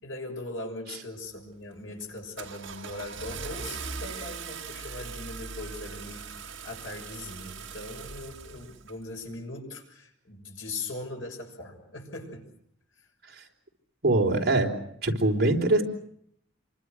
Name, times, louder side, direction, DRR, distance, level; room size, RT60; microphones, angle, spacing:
voice 1, 0.0-6.3 6.6-12.5, left 2 dB, 80° left, 1 dB, 6.7 m, -40 dB
Car / Engine starting, 1.2-1.5 2.0-9.0, right 5 dB, 70° right, 1.7 m, -40 dB
voice 2, 14.0-14.7 15.0-15.8, right 2 dB, 55° right, 1 dB, 3.9 m, -23 dB
28.0 x 24.5 x 6.4 m, 0.68 s
head